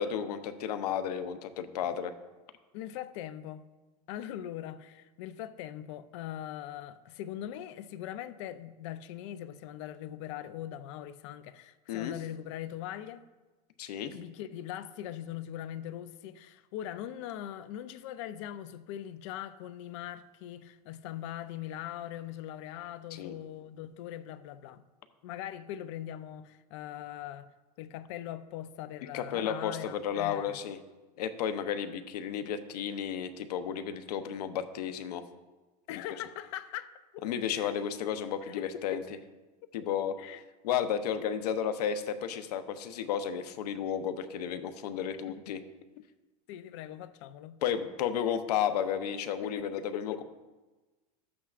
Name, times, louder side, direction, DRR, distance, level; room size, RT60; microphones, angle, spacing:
voice 1, 0.0-2.1 11.9-12.1 13.8-14.1 23.1-23.3 29.1-30.8 31.2-35.2 35.9-36.0 37.2-39.0 39.7-40.2 40.6-45.6 47.6-50.2, left 8 dB, 80° left, 0.8 m, -33 dB
voice 2, 2.7-3.7 4.1-13.2 14.1-24.8 25.2-27.5 27.8-30.6 35.9-37.2 37.5-37.8 38.4-39.0 40.2-40.4 45.5-45.6 46.0-46.1 46.5-47.6 49.4-49.5 49.9-50.2, left 11 dB, 50° left, 0.5 m, -41 dB
12.5 x 8.4 x 2.5 m
supercardioid pair, 165°, 20 cm